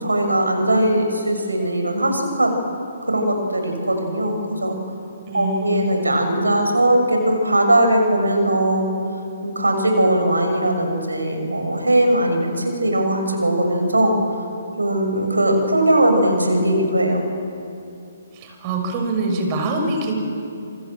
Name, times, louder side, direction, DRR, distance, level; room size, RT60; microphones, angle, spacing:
voice 1, 0.0-2.5 3.1-4.8 5.3-8.9 9.4-14.2 14.8-17.2, right 1 dB, 85° right, 4 dB, 6.7 m, -19 dB
voice 2, 5.3-5.8 18.3-20.1, right 2 dB, 30° right, 3 dB, 6.2 m, -24 dB
28.0 x 25.5 x 7.6 m, 2.6 s
figure-of-eight pair, 130°, 0 cm